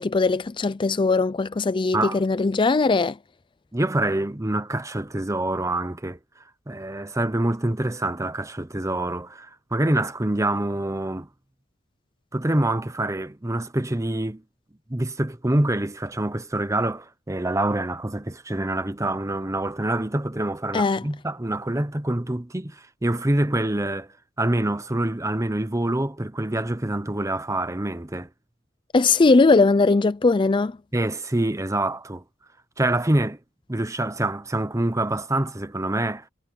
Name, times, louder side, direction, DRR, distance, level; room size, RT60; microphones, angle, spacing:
voice 1, 0.0-3.2 20.7-21.0 28.9-30.8, left 3 dB, 25° left, 0.4 m, -20 dB
voice 2, 3.7-6.2 6.7-11.3 12.3-14.4 14.9-24.1 24.4-28.3 30.9-32.2 32.8-33.4 33.7-36.2, right 1 dB, 15° right, 0.9 m, -26 dB
head